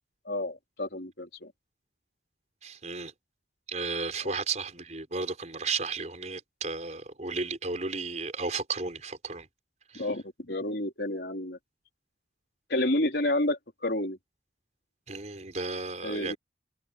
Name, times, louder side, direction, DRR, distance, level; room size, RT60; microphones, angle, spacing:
voice 1, 0.3-1.5 4.2-4.3 9.9-11.6 12.7-14.2 16.0-16.4, left 1 dB, 65° left, 3.9 m, -30 dB
voice 2, 2.6-3.1 3.7-9.5 9.9-10.1 15.1-16.4, right 4 dB, 40° right, 5.0 m, -34 dB
head